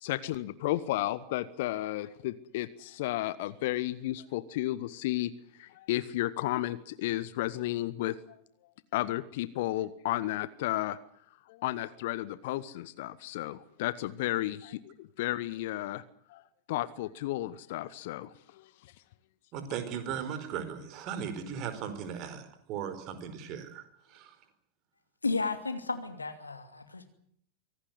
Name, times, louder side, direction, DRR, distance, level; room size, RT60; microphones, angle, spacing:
voice 1, 0.0-5.3 5.6-8.4 8.9-11.0 11.5-16.0 16.3-16.4 16.7-18.3 18.6-18.7, left 16 dB, 50° left, 17 dB, 1.0 m, -33 dB
voice 2, 19.5-24.4, right 8 dB, 40° right, 9 dB, 4.7 m, -37 dB
voice 3, 25.2-27.0, left 3 dB, 80° left, 8 dB, 2.8 m, -33 dB
24.5 x 17.5 x 9.6 m, 0.67 s
figure-of-eight pair, 90°, 0 cm